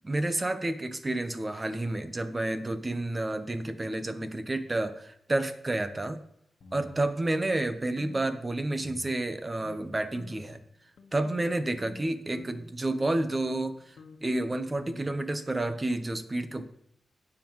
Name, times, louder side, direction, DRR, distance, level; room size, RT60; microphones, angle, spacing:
voice 1, 0.0-6.2 6.7-10.6 11.1-16.6, right 2 dB, 20° right, 9 dB, 0.9 m, -30 dB
sound 1, 6.6-7.6 8.0-8.4 8.8-9.3 9.6-9.8 10.1-10.6 11.0-15.3, left 3 dB, 80° left, 1.3 m, -49 dB
17.5 x 7.4 x 3.1 m, 0.72 s
wide cardioid pair, 150°, 0 cm